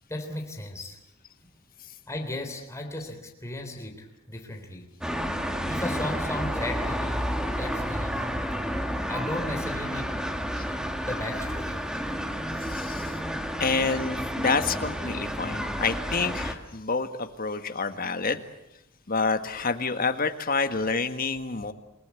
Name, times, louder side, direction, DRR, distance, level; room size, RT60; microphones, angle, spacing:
voice 1, 0.1-1.0 2.1-4.9 5.6-8.2 9.1-10.1 11.0-11.8, left 1 dB, 15° left, 3 dB, 3.6 m, -35 dB
sound 1, 5.0-16.5, equal, 5° right, 1.8 m, -30 dB
voice 2, 12.6-13.2 13.6-18.4 19.1-21.7, left 4 dB, 40° left, 8 dB, 1.7 m, -28 dB
28.5 x 19.0 x 8.3 m, 0.85 s
head